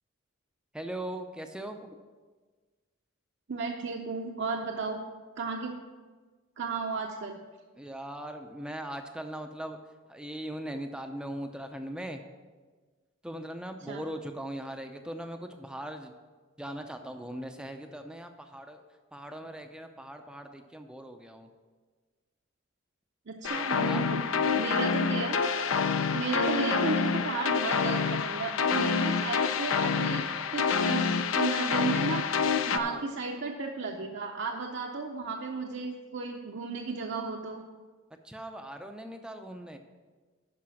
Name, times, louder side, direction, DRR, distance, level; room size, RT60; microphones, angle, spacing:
voice 1, 0.7-2.0 7.8-9.8 10.1-12.2 13.2-16.1 16.6-18.8 19.1-21.5 23.4-24.0 32.7-33.0 38.2-39.8, right 1 dB, 5° right, 5 dB, 0.5 m, -40 dB
voice 2, 3.5-5.0 5.4-5.8 6.6-7.4 13.9-14.0 23.3-24.2 24.5-25.4 26.1-37.6, right 4 dB, 60° right, 1 dB, 0.6 m, -34 dB
sound 1, 23.4-32.8, left 5 dB, 70° left, 0.5 m, -27 dB
11.5 x 4.9 x 6.3 m, 1.4 s
head